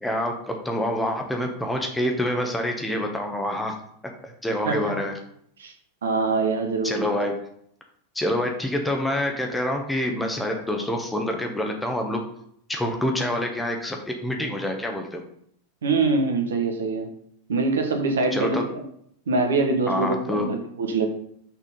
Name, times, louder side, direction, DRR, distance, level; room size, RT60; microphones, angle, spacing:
voice 1, 0.0-3.7 4.2-5.2 6.8-7.4 8.1-12.2 12.7-15.2 18.3-18.7 19.9-20.5, left 1 dB, 5° left, 2 dB, 1.1 m, -26 dB
voice 2, 6.0-7.0 15.8-17.1 17.5-18.8 19.3-21.1, right 3 dB, 65° right, 4 dB, 1.2 m, -24 dB
6.3 x 4.1 x 5.5 m, 0.69 s
figure-of-eight pair, 90°, 0 cm